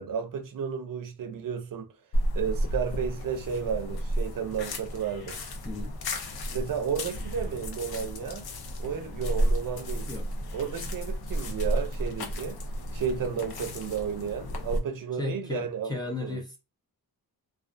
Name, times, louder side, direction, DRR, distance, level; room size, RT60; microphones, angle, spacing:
voice 1, 0.0-1.9 2.4-5.4 6.5-8.5 8.8-10.1 10.5-12.6 12.9-16.4, right 7 dB, 60° right, 0.5 m, -32 dB
sound 1, 2.1-14.8, equal, 75° left, 0.5 m, -32 dB
voice 2, 5.6-6.0 10.1-10.3 15.2-16.6, left 3 dB, 10° left, 0.4 m, -35 dB
2.3 x 2.2 x 2.4 m
wide cardioid pair, 150°, 37 cm